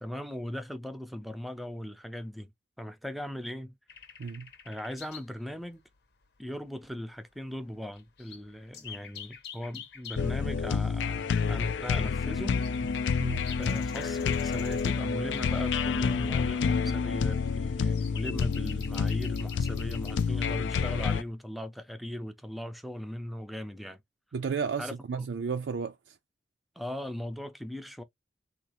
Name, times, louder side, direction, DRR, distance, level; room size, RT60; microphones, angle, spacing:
voice 1, 0.0-2.5 2.8-3.8 4.7-5.8 6.4-12.6 13.6-24.0 24.8-25.3 26.8-28.0, equal, ahead, 0.4 m, -39 dB
sound 1, 3.9-5.4 5.6-5.7 6.4-6.5 6.7-7.1 7.5-7.6 7.9-10.3 11.0-20.3 21.0-21.3, left 5 dB, 65° left, 0.8 m, -46 dB
sound 2, 10.2-21.2, left 5 dB, 80° left, 0.4 m, -29 dB
voice 2, 24.3-26.2, right 5 dB, 80° right, 0.4 m, -33 dB
3.5 x 2.4 x 2.9 m
head